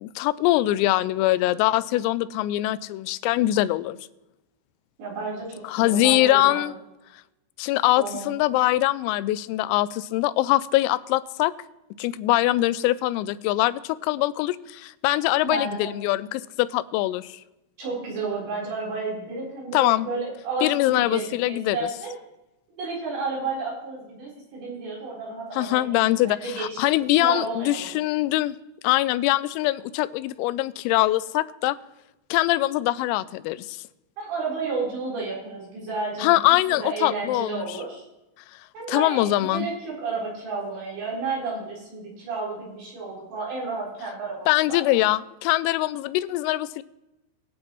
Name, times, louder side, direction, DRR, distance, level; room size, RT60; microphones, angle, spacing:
voice 1, 0.0-4.0 5.6-6.7 7.6-11.5 12.0-17.4 19.7-20.1 20.6-21.8 25.5-28.6 28.8-31.8 32.3-33.8 36.2-37.8 38.9-39.7 44.5-46.8, left 16 dB, 90° left, 15 dB, 3.3 m, -23 dB
voice 2, 5.0-6.7 8.0-8.3 15.4-15.9 17.8-22.1 22.8-26.8 27.2-27.9 34.2-36.4 36.8-38.0 38.7-44.8, right 3 dB, 60° right, -5 dB, 6.0 m, -32 dB
22.0 x 8.7 x 3.0 m, 0.97 s
omnidirectional pair, 5.9 m